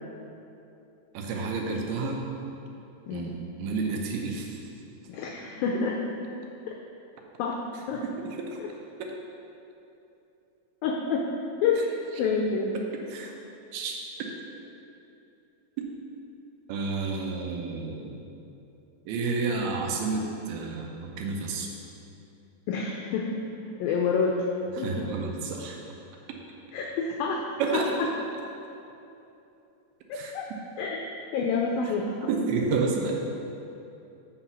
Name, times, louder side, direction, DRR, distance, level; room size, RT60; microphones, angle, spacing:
voice 1, 1.1-2.3 3.1-4.6 7.7-7.8 8.2-8.6 9.0-9.1 11.8-11.9 12.1-12.2 13.1-13.3 13.7-14.0 16.7-18.2 19.1-21.7 24.7-25.8 27.6-28.0 30.1-30.3 31.8-31.9 32.3-33.1, right 4 dB, 80° right, 1 dB, 2.5 m, -30 dB
voice 2, 5.1-5.9 7.4-7.6 7.9-8.0 10.8-11.3 11.6-11.8 12.2-12.7 22.7-23.4 23.8-24.5 24.8-25.1 26.7-27.5 27.7-27.8 30.1-30.5 30.8-31.0 31.3-32.1, left 5 dB, 85° left, 0 dB, 2.0 m, -28 dB
7.8 x 5.7 x 6.0 m, 2.9 s
omnidirectional pair, 4.8 m